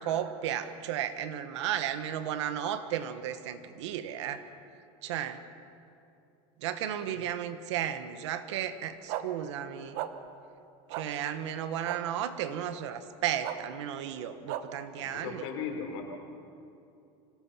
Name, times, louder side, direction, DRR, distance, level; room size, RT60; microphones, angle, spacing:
voice 1, 0.0-4.5 5.0-5.4 6.6-10.0 10.9-15.5, right 10 dB, 90° right, 10 dB, 1.4 m, -34 dB
sound 1, 9.1-9.2 9.9-10.1 10.9-11.0 11.9-12.0 13.4-13.6 14.5-14.6, right 14 dB, 60° right, 1.1 m, -34 dB
voice 2, 14.9-16.0, left 6 dB, 80° left, 2 dB, 4.4 m, -37 dB
25.0 x 18.0 x 5.8 m, 2.7 s
supercardioid pair, 140°, 15 cm